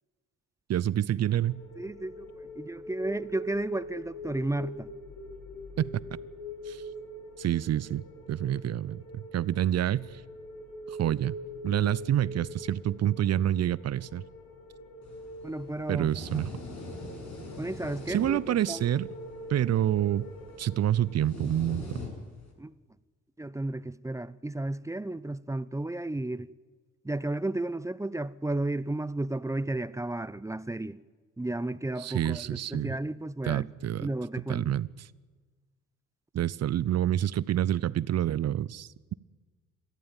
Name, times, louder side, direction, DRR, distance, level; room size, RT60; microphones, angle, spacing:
voice 1, 0.7-1.6 5.8-5.9 6.7-6.8 7.4-10.2 10.9-11.3 11.6-14.2 15.9-16.5 18.1-19.1 19.5-20.3 20.6-22.0 32.0-32.9 33.4-34.1 34.5-35.1 36.3-39.1, right 11 dB, 45° right, 0.7 m, -28 dB
sound 1, 1.2-21.2, left 1 dB, 90° left, 2.2 m, -44 dB
voice 2, 1.8-2.3 2.6-4.9 15.4-16.4 17.6-18.8 22.6-22.7 23.4-26.5 27.0-31.0 31.4-33.7 34.0-34.7, right 2 dB, 10° right, 0.6 m, -33 dB
sound 2, 15.0-22.5, left 2 dB, 50° left, 6.7 m, -44 dB
23.0 x 14.5 x 9.1 m
hypercardioid pair, 50°, 37 cm